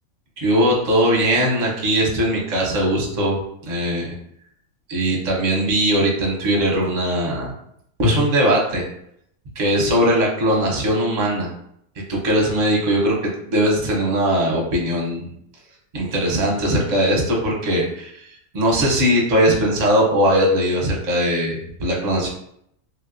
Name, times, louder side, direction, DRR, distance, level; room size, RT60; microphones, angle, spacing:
voice 1, 0.4-3.4 3.7-4.1 4.9-7.5 8.0-8.8 9.6-11.5 12.1-15.3 15.9-18.3 18.5-22.3, equal, 40° right, -1 dB, 0.7 m, -20 dB
3.1 x 2.8 x 2.5 m, 0.70 s
omnidirectional pair, 1.5 m